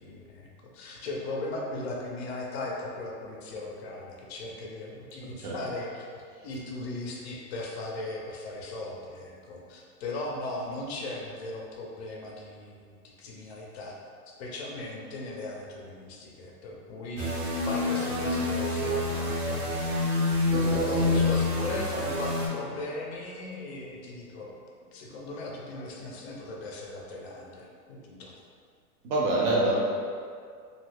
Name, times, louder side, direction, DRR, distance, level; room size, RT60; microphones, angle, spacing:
voice 1, 0.0-14.0 14.4-17.3 17.7-19.7 20.8-24.6 24.9-28.3, left 2 dB, 45° left, -2 dB, 0.6 m, -38 dB
sound 1, 17.2-22.5, left 2 dB, 80° right, 1.0 m, -27 dB
voice 2, 20.5-21.2 21.7-21.8 29.0-29.8, right 2 dB, 35° right, -4 dB, 0.5 m, -27 dB
2.6 x 2.4 x 3.3 m, 2.2 s
hypercardioid pair, 150°, 47 cm